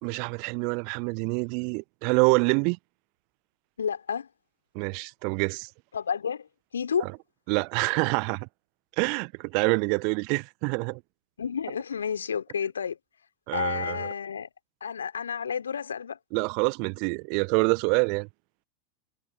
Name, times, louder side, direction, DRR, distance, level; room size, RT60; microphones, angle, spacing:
voice 1, 0.0-2.8 4.7-5.7 7.0-7.1 7.5-8.5 9.0-11.0 13.5-14.1 16.3-18.3, right 36 dB, 50° right, 1.2 m, -26 dB
voice 2, 3.8-4.3 5.9-6.5 6.7-7.1 11.4-13.0 13.5-14.5 14.8-16.2, left 7 dB, 75° left, 3.7 m, -30 dB
figure-of-eight pair, 85°, 0 cm